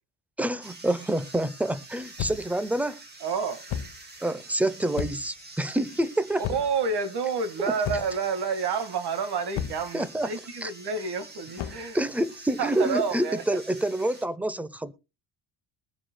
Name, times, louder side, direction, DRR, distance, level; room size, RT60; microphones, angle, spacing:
voice 1, 0.4-3.0 4.2-6.4 7.6-7.7 9.9-10.3 10.6-10.7 11.9-14.9, right 1 dB, 5° right, 0.6 m, -27 dB
sound 1, 0.6-14.3, right 2 dB, 20° right, 3.0 m, -47 dB
sound 2, 2.2-2.6 3.7-4.0 5.0-5.4 6.4-6.8 7.8-8.3 9.6-9.9 11.6-11.9, left 9 dB, 65° left, 1.0 m, -33 dB
voice 2, 3.2-3.6 6.5-12.0 12.6-13.4, right 5 dB, 55° right, 1.9 m, -29 dB
22.5 x 7.5 x 2.2 m
cardioid pair, 140°, 47 cm